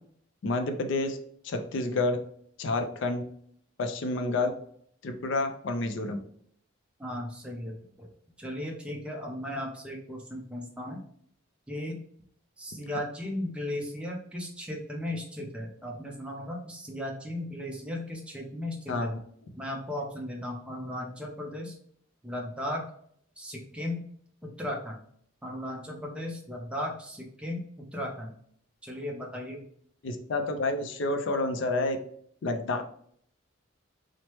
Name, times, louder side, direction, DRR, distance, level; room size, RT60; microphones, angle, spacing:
voice 1, 0.4-1.2 1.4-2.2 2.6-3.2 3.8-4.5 5.0-6.2 18.9-19.2 30.0-32.0 32.4-32.8, left 2 dB, 70° left, 6 dB, 0.4 m, -29 dB
voice 2, 7.0-8.1 8.4-11.0 11.7-12.0 12.6-19.1 19.5-21.8 22.2-22.9 23.4-24.0 24.4-25.0 25.4-28.3 28.8-29.6, left 1 dB, 5° right, -1 dB, 0.5 m, -36 dB
3.0 x 2.0 x 3.0 m, 0.63 s
head